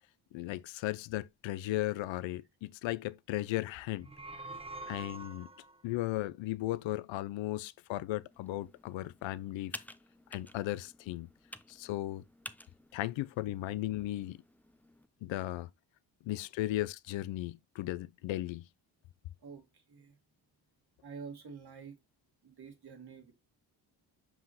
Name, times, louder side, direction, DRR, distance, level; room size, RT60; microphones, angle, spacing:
voice 1, 0.3-4.1 4.9-5.5 5.8-9.7 10.3-11.3 11.7-12.2 12.9-14.4 15.2-15.7 16.2-18.7, left 16 dB, 65° left, 0.6 m, -36 dB
sound 1, 3.9-5.8, right 2 dB, 10° right, 1.0 m, -45 dB
Computer keyboard, 8.3-15.1, left 1 dB, 5° left, 0.6 m, -52 dB
voice 2, 19.4-20.2 21.0-22.0 22.4-23.3, right 5 dB, 50° right, 2.1 m, -48 dB
5.9 x 5.6 x 2.9 m
supercardioid pair, 55°, 49 cm